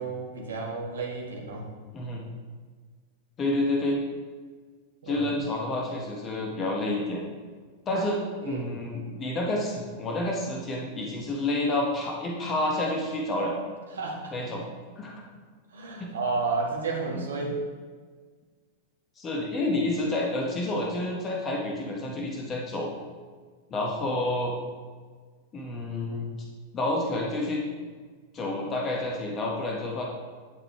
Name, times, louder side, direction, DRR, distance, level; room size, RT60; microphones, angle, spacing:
voice 1, 0.0-1.8 5.0-5.3 7.9-8.1 8.4-8.7 13.9-14.3 15.7-17.6 24.0-24.2, right 4 dB, 70° right, 0 dB, 1.7 m, -32 dB
voice 2, 1.9-2.2 3.4-4.0 5.1-7.2 7.9-13.6 14.3-14.7 14.9-15.2 16.0-16.1 17.1-17.3 19.2-22.9 23.7-24.6 25.5-26.3 26.7-27.6 28.3-30.0, left 1 dB, 25° left, -1 dB, 1.4 m, -29 dB
11.5 x 6.7 x 3.3 m, 1.5 s
figure-of-eight pair, 90°, 0 cm